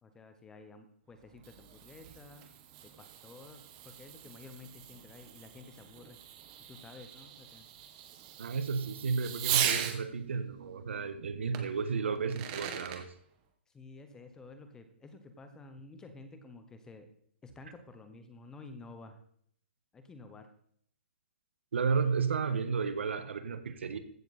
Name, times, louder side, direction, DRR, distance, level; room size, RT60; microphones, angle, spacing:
voice 1, 0.0-2.4 2.8-6.2 6.6-7.7 13.7-17.1 17.4-19.2 19.9-20.5, left 3 dB, 10° left, 8 dB, 1.0 m, -51 dB
Fireworks, 1.1-10.0 11.5-11.6 12.2-13.0, right 10 dB, 30° right, 1.4 m, -38 dB
voice 2, 8.4-13.1 21.7-24.0, right 5 dB, 75° right, 10 dB, 1.6 m, -32 dB
15.0 x 7.0 x 4.2 m, 0.65 s
hypercardioid pair, 155°, 6 cm